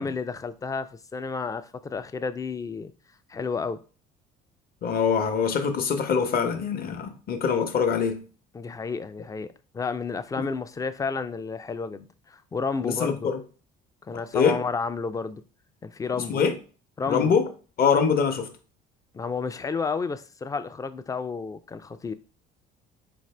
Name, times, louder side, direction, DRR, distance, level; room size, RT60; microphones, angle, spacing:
voice 1, 0.0-2.9 3.3-3.8 8.5-9.5 9.7-13.3 14.1-15.4 15.8-16.4 17.0-17.3 19.1-22.1, left 5 dB, 15° left, 0.3 m, -31 dB
voice 2, 4.8-8.2 10.4-10.5 12.8-13.4 14.3-14.6 16.3-16.5 17.1-17.5 17.8-18.5, left 6 dB, 45° left, 0.8 m, -24 dB
4.1 x 2.6 x 3.2 m
supercardioid pair, 80°, 20 cm